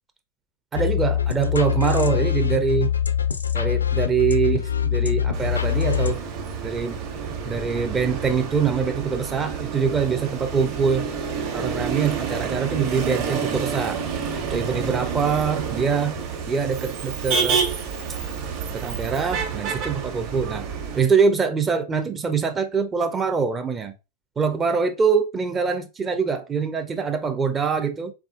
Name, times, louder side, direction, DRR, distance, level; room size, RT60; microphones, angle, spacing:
sound 1, 0.7-6.1, left 9 dB, 75° left, 0.4 m, -23 dB
voice 1, 0.7-2.9 3.5-6.2 6.6-7.0 7.4-11.1 11.5-14.0 14.5-16.1 16.5-17.7 18.7-20.7 20.9-23.9 24.4-28.1, right 5 dB, 20° right, 0.6 m, -24 dB
Motor vehicle (road), 5.3-21.0, right 6 dB, 40° right, 1.3 m, -29 dB
3.8 x 3.5 x 2.4 m
figure-of-eight pair, 90°, 0 cm